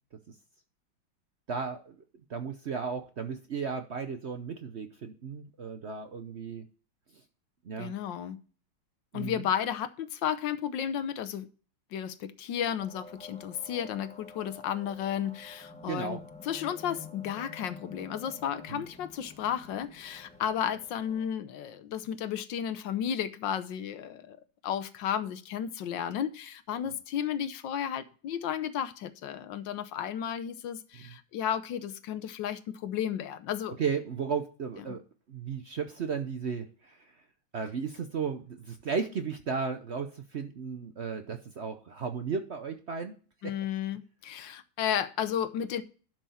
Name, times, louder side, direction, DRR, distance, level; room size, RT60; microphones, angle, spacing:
voice 1, 1.5-1.9 2.3-6.6 7.6-7.9 9.1-9.5 15.9-16.2 18.7-18.8 26.9-27.0 30.9-31.1 33.8-35.0 35.3-37.1 37.5-43.2 43.4-43.5, right 5 dB, 75° right, 7 dB, 0.6 m, -35 dB
voice 2, 7.8-8.4 9.1-11.5 11.9-16.2 16.4-24.4 24.6-33.7 34.9-35.0 43.4-45.8, left 9 dB, 65° left, 12 dB, 1.4 m, -33 dB
sound 1, 12.8-21.3, left 3 dB, 5° left, 1.3 m, -50 dB
12.0 x 6.1 x 4.2 m, 0.38 s
omnidirectional pair, 2.3 m